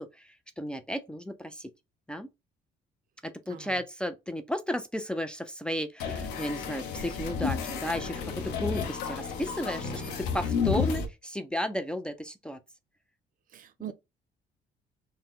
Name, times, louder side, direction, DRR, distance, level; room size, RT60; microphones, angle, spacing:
voice 1, 0.0-1.7 2.1-2.3 3.2-12.6 13.9-14.0, equal, 5° left, 0.4 m, -34 dB
voice 2, 3.5-3.8 13.5-13.9, right 10 dB, 55° right, 0.6 m, -42 dB
sound 1, 6.0-11.0, left 6 dB, 85° left, 0.9 m, -31 dB
4.2 x 2.1 x 3.7 m
cardioid pair, 110°, 17 cm